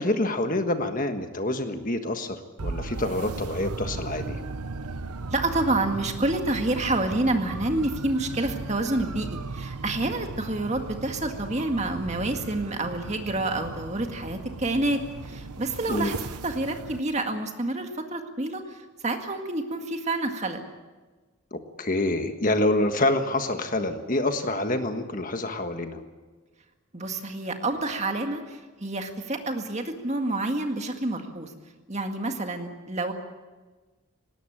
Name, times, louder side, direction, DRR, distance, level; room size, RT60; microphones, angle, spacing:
voice 1, 0.0-2.4 2.6-4.4 15.9-16.1 21.5-26.0, left 2 dB, 35° left, 7 dB, 1.5 m, -27 dB
sound 1, 2.6-17.0, right 3 dB, 90° right, 0.9 m, -37 dB
voice 2, 5.3-20.6 26.9-31.5 31.9-33.1, right 2 dB, 30° right, 4 dB, 2.0 m, -28 dB
19.5 x 18.5 x 8.9 m, 1.3 s
head